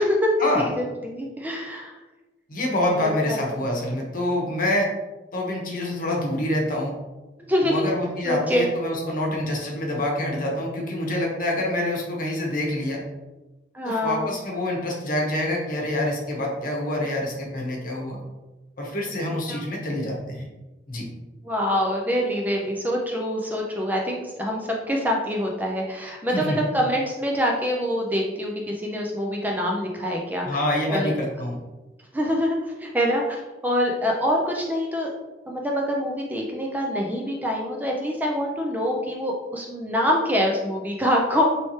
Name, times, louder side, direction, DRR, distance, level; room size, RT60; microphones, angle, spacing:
voice 1, 0.0-0.3 0.6-2.0 2.9-3.4 7.5-7.8 8.2-8.7 13.7-14.3 19.5-19.6 21.4-30.5 30.9-31.1 32.1-35.1 35.5-41.4, equal, 10° right, -1 dB, 0.4 m, -25 dB
voice 2, 2.5-4.9 5.3-6.9 7.6-13.0 13.8-18.2 18.8-20.5 20.9-21.1 26.3-26.6 30.4-31.6, left 1 dB, 50° left, -1 dB, 1.0 m, -26 dB
4.2 x 3.2 x 3.1 m, 1.1 s
head